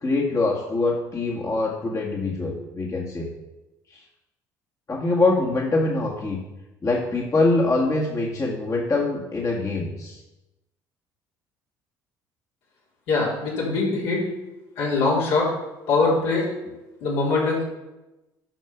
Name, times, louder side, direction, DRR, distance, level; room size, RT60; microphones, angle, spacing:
voice 1, 0.0-3.3 4.9-6.4 6.8-10.2, left 2 dB, 30° left, -3 dB, 1.9 m, -24 dB
voice 2, 13.1-14.2 14.8-15.5 15.9-16.5 17.0-17.6, left 3 dB, 70° left, -5 dB, 3.5 m, -22 dB
9.0 x 5.6 x 5.9 m, 1.0 s
hypercardioid pair, 60°, 10 cm